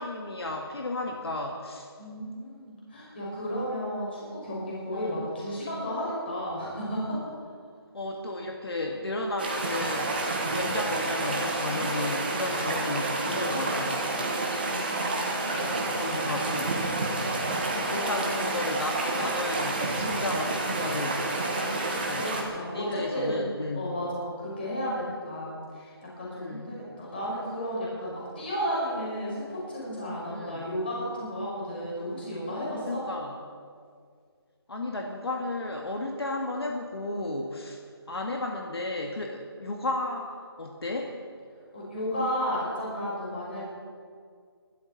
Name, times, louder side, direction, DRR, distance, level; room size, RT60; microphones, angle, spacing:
voice 1, 0.0-1.9 4.9-5.3 7.9-14.4 15.4-16.8 17.7-21.2 22.0-22.4 22.7-23.9 26.3-26.7 30.3-30.7 32.8-33.4 34.7-37.8 38.1-41.1 43.5-43.6, left 2 dB, 70° left, 1 dB, 1.9 m, -34 dB
voice 2, 2.0-7.2 10.3-10.7 14.6-15.8 17.5-18.7 21.5-33.0 41.7-43.7, equal, 25° left, -6 dB, 5.2 m, -33 dB
sound 1, 9.4-22.4, right 2 dB, 20° right, 1.5 m, -29 dB
24.0 x 12.5 x 4.1 m, 2.1 s
figure-of-eight pair, 180°, 14 cm